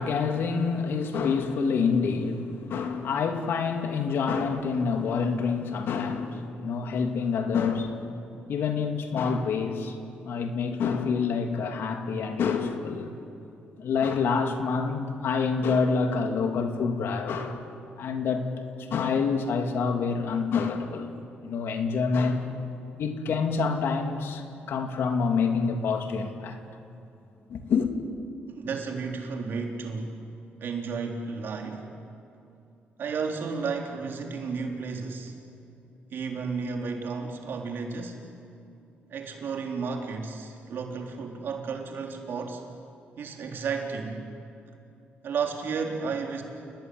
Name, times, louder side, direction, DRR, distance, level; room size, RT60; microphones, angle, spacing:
voice 1, 0.0-8.1 8.5-9.9 10.2-13.1 13.8-17.6 18.0-18.5 18.9-21.1 21.4-22.6 23.0-26.6 27.5-27.9, left 5 dB, 75° left, 5 dB, 2.7 m, -27 dB
voice 2, 28.5-30.2 30.6-31.9 33.0-35.3 36.1-38.2 39.1-42.6 43.2-44.3 45.2-46.4, right 5 dB, 65° right, 2 dB, 3.9 m, -33 dB
29.5 x 19.0 x 9.7 m, 2.7 s
cardioid pair, 110°, 4 cm